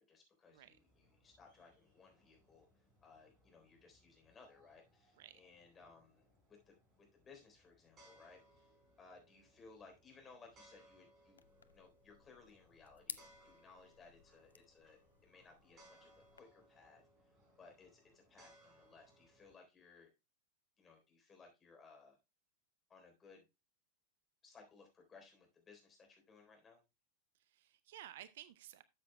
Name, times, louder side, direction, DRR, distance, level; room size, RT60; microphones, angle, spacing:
voice 1, 0.0-2.7 3.0-6.2 6.5-6.8 7.1-8.4 9.0-17.0 17.6-20.1 20.8-22.2 22.9-23.4 24.4-26.8, left 4 dB, 20° left, 2 dB, 3.6 m, -62 dB
sound 1, 0.6-19.6, right 1 dB, 25° right, 4.2 m, -68 dB
sound 2, 11.4-16.4, left 6 dB, 75° left, 0.4 m, -55 dB
voice 2, 27.3-28.8, right 12 dB, 55° right, 16 dB, 0.5 m, -55 dB
12.5 x 7.5 x 2.2 m, 0.24 s
figure-of-eight pair, 90°, 0 cm